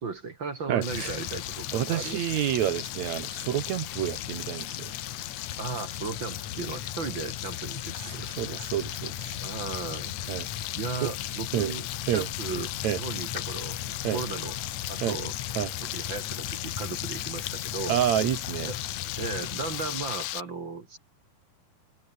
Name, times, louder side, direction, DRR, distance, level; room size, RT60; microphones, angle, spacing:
voice 1, 0.0-2.3 5.6-8.6 9.4-10.1 10.7-13.8 14.1-14.6 14.9-15.3 15.9-18.0 18.7-18.8 19.2-21.0, right 4 dB, 40° right, 1.9 m, -36 dB
voice 2, 0.7-1.1 1.7-4.9 8.1-9.3 10.3-10.5 11.0-11.1 11.5-11.7 12.1-12.3 12.8-13.0 14.0-14.2 15.0-15.2 15.5-15.7 17.9-18.7, right 12 dB, 85° right, 1.5 m, -28 dB
Frying (food), 0.8-20.4, left 15 dB, 70° left, 2.1 m, -36 dB
Mechanisms, 0.9-20.3, left 9 dB, 50° left, 2.5 m, -40 dB
open air
omnidirectional pair, 4.8 m